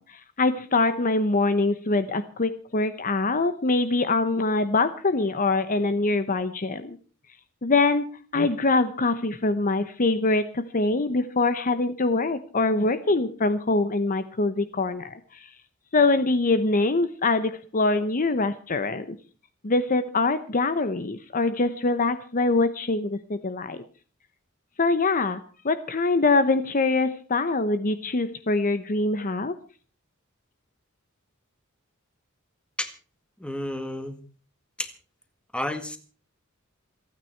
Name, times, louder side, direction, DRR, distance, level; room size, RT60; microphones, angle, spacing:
voice 1, 0.0-7.0 7.6-8.1 8.3-15.5 15.9-19.2 19.6-23.8 24.8-29.5, left 3 dB, 40° left, 11 dB, 0.9 m, -24 dB
voice 2, 33.4-34.1 34.8-34.9 35.5-36.0, left 1 dB, 5° left, 8 dB, 1.8 m, -30 dB
28.0 x 9.4 x 4.5 m, 0.39 s
head